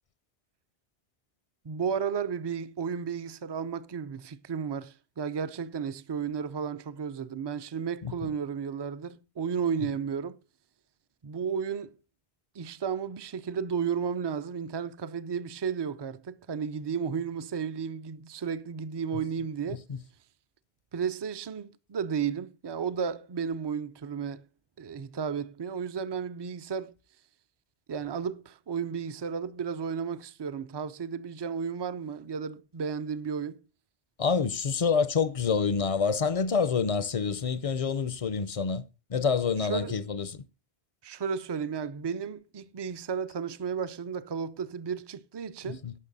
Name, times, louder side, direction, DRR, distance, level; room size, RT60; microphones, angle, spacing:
voice 1, 1.6-10.4 11.2-12.0 12.6-19.8 20.9-24.4 24.8-26.9 27.9-33.6 39.7-40.0 41.0-45.8, right 6 dB, 35° right, 0.4 m, -33 dB
voice 2, 34.2-38.8 39.1-40.4 45.6-45.9, left 5 dB, 40° left, 0.5 m, -27 dB
17.5 x 6.0 x 4.0 m
omnidirectional pair, 1.1 m